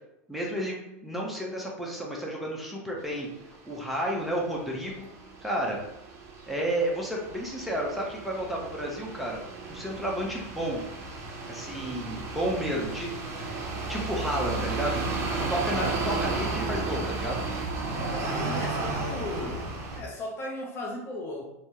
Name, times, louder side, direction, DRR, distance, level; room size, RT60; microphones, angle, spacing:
voice 1, 0.3-3.3 3.6-5.0 5.4-5.8 6.5-9.4 9.7-10.8 11.5-13.1 13.9-15.1 15.5-17.4, right 1 dB, ahead, -3 dB, 0.7 m, -31 dB
sound 1, 3.1-3.3 4.0-20.0, right 3 dB, 40° right, 0.8 m, -33 dB
voice 2, 17.9-19.7 19.9-21.4, left 1 dB, 30° left, 0 dB, 0.5 m, -36 dB
3.4 x 2.1 x 2.8 m, 0.90 s
hypercardioid pair, 115°, 8 cm